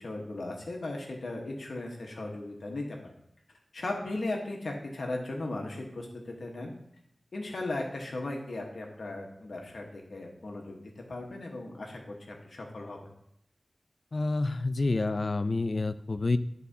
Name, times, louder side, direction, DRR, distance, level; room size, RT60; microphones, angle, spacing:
voice 1, 0.0-3.0 3.7-6.7 7.3-12.1 12.4-13.0, left 2 dB, 90° left, 1 dB, 1.1 m, -37 dB
voice 2, 14.1-16.4, left 3 dB, 60° left, 12 dB, 0.4 m, -28 dB
12.0 x 4.1 x 2.7 m, 0.77 s
wide cardioid pair, 65°, 0 cm